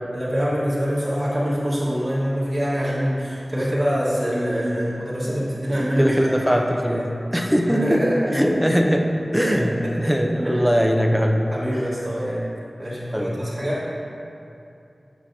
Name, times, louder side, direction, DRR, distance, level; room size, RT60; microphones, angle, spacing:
voice 1, 0.1-7.0 7.7-8.5 9.4-9.8 10.0-10.6 11.5-12.5 12.8-13.8, equal, 40° right, -9 dB, 1.5 m, -25 dB
voice 2, 6.0-7.0 7.3-8.0 8.3-11.5 13.1-13.4, equal, ahead, 2 dB, 0.5 m, -21 dB
8.7 x 5.0 x 2.7 m, 2.6 s
wide cardioid pair, 60°, 0 cm